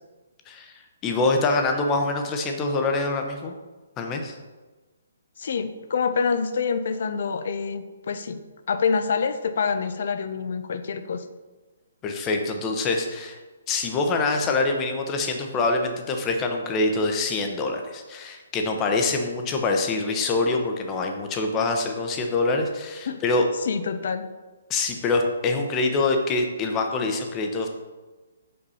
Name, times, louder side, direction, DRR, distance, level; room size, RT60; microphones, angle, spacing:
voice 1, 1.0-3.5 4.0-4.4 12.0-13.4 13.7-23.4 24.7-27.7, left 3 dB, 25° left, 3 dB, 0.9 m, -25 dB
voice 2, 5.4-8.4 8.7-11.2 23.1-23.2 23.6-24.2, left 5 dB, 60° left, 10 dB, 0.6 m, -26 dB
5.4 x 5.3 x 4.2 m, 1.3 s
hypercardioid pair, 140°, 0 cm